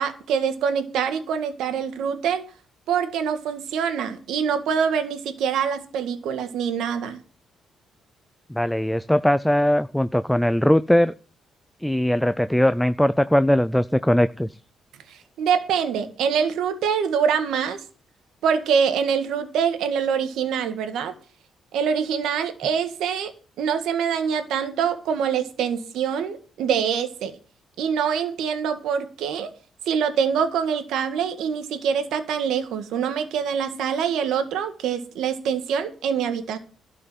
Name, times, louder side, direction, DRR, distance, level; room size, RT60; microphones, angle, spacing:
voice 1, 0.0-2.5 2.9-7.2 15.1-17.8 18.4-21.1 21.7-27.3 27.8-29.5 29.9-36.6, right 7 dB, 80° right, 1.7 m, -25 dB
voice 2, 8.5-11.1 11.8-14.6, left 1 dB, 5° left, 0.5 m, -20 dB
12.5 x 5.4 x 8.9 m
cardioid pair, 90°, 0 cm